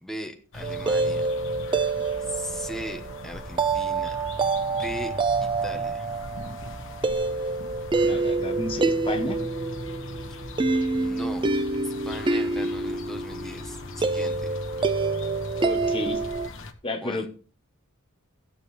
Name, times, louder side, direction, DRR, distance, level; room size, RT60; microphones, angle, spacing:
voice 1, 0.0-1.3 2.2-4.2 4.6-5.1 5.4-6.1 10.3-10.5 10.9-11.5 11.8-14.6 17.0-17.3, equal, ahead, 3 dB, 1.1 m, -38 dB
sound 1, 0.5-16.7, left 2 dB, 65° left, 1.3 m, -39 dB
sound 2, 0.6-16.5, right 3 dB, 25° right, 0.5 m, -27 dB
voice 2, 8.0-9.4 15.6-16.2 16.8-17.3, left 2 dB, 25° left, 5 dB, 1.1 m, -31 dB
16.5 x 7.4 x 3.3 m, 0.37 s
head